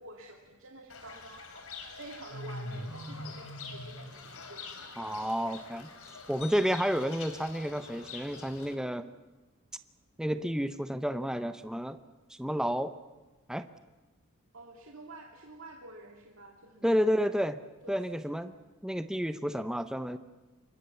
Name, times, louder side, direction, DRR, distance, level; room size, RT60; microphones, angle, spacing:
voice 1, 0.0-5.0 14.5-17.4 17.8-18.6, right 2 dB, 60° right, 1 dB, 2.2 m, -50 dB
Fowl / Bird, 0.9-8.7, left 2 dB, 70° left, 3.3 m, -44 dB
voice 2, 5.0-5.9 6.3-9.1 10.2-12.0 12.3-12.9 13.5-13.7 16.8-17.6 17.9-18.5 18.8-20.2, equal, 5° right, 10 dB, 0.7 m, -30 dB
sound 1, 6.4-8.8, left 10 dB, 30° left, 1.5 m, -53 dB
26.0 x 21.5 x 7.1 m, 1.2 s
head